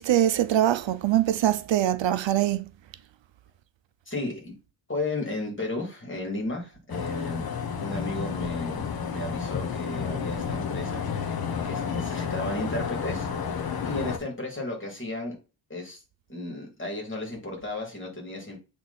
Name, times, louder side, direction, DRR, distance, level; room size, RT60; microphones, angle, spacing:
voice 1, 0.0-2.6, right 12 dB, 70° right, 0.6 m, -23 dB
voice 2, 4.1-4.5 4.9-7.4 7.8-15.4 15.7-16.0 16.3-18.6, left 2 dB, 25° left, 2.7 m, -34 dB
sound 1, 6.9-14.2, left 6 dB, 50° left, 0.9 m, -31 dB
7.9 x 3.4 x 4.1 m
wide cardioid pair, 145°, 46 cm